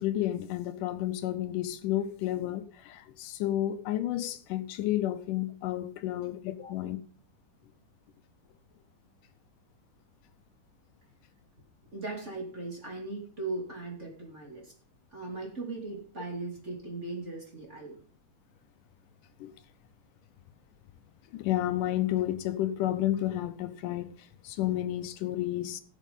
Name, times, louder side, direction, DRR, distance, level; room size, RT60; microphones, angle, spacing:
voice 1, 0.0-7.0 19.4-19.5 21.3-24.1 24.4-25.8, left 13 dB, 80° left, 2.2 m, -31 dB
voice 2, 11.9-14.7 15.1-17.9, right 3 dB, 20° right, 2.8 m, -38 dB
16.5 x 7.4 x 5.5 m
omnidirectional pair, 3.9 m